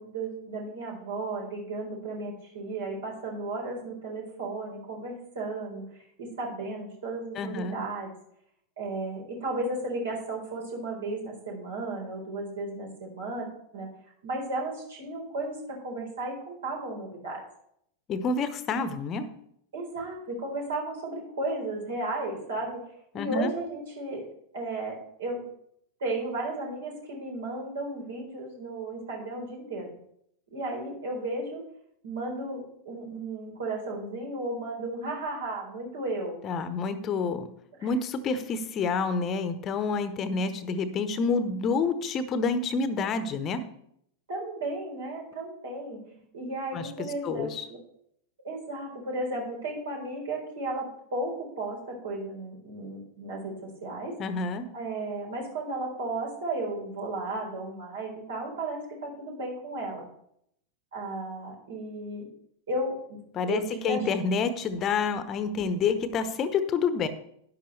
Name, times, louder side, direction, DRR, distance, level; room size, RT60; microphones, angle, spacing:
voice 1, 0.0-5.8 6.2-8.1 8.8-13.5 13.7-13.9 14.2-17.5 19.7-24.3 24.5-25.4 26.0-30.0 30.5-31.6 32.0-36.4 37.8-37.9 44.3-46.0 46.3-47.8 48.4-54.2 54.7-60.1 60.9-62.3 62.7-63.2 63.5-64.1, right 2 dB, 65° right, 0 dB, 4.1 m, -34 dB
voice 2, 7.3-7.8 18.1-19.3 23.1-23.5 36.4-37.5 37.8-43.7 46.7-46.9 47.2-47.6 54.2-54.7 63.3-67.1, left 4 dB, 30° left, 12 dB, 1.0 m, -28 dB
12.5 x 10.0 x 3.3 m, 0.71 s
figure-of-eight pair, 90°, 0 cm